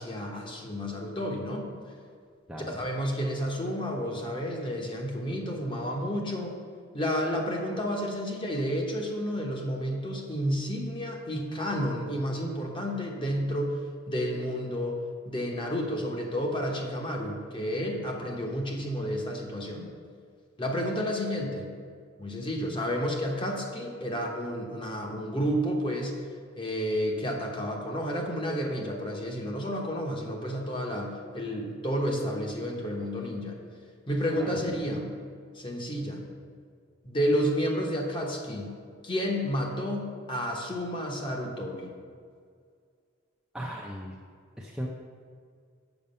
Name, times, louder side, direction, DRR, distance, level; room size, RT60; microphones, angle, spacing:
voice 1, 0.0-1.7 2.7-6.6 6.9-13.8 14.1-19.9 20.6-21.7 22.2-26.2 26.6-33.6 34.1-35.0 35.5-36.2 37.0-38.7 39.0-41.9, equal, 25° left, 1 dB, 1.0 m, -31 dB
voice 2, 43.5-44.2 44.6-44.9, equal, 5° right, -3 dB, 0.5 m, -37 dB
7.1 x 6.5 x 5.4 m, 2.1 s
head